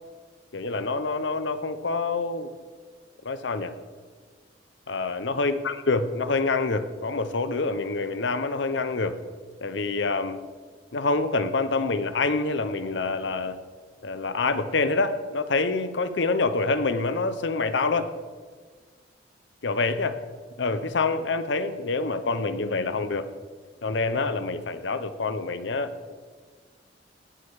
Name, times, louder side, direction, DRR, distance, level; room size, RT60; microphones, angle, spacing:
voice 1, 0.5-2.5 3.2-3.7 4.9-9.2 9.6-10.4 10.9-13.6 14.0-18.1 19.6-20.2 20.6-23.3 23.8-26.1, left 3 dB, 75° left, 11 dB, 0.8 m, -26 dB
18.0 x 6.6 x 4.8 m, 1.5 s
head